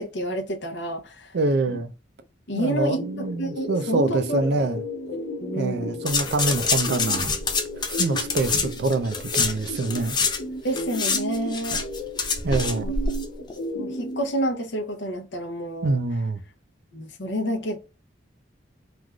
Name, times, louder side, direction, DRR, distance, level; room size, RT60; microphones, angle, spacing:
voice 1, 0.0-1.4 1.7-1.8 2.5-4.5 5.4-6.0 10.6-11.8 12.8-12.9 13.7-16.0 16.9-17.8, right 1 dB, 65° left, 0.7 m, -29 dB
voice 2, 1.3-1.9 2.5-4.8 5.5-7.4 7.8-10.2 12.4-12.9 15.8-16.4, right 3 dB, 60° right, 0.4 m, -25 dB
sound 1, 3.0-14.2, equal, 85° left, 1.1 m, -35 dB
sound 2, 6.1-10.4 10.7-13.2 13.5-13.6, left 5 dB, 25° left, 0.4 m, -26 dB
3.3 x 2.4 x 2.2 m
head